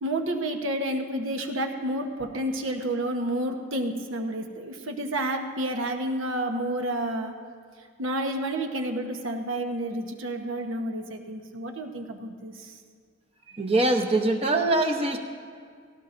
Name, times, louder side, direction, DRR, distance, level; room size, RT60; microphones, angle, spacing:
voice 1, 0.0-7.3 8.0-12.8, right 1 dB, 75° right, 4 dB, 1.1 m, -30 dB
voice 2, 13.6-15.2, right 2 dB, 25° right, 4 dB, 0.8 m, -23 dB
18.0 x 17.0 x 2.6 m, 2.1 s
head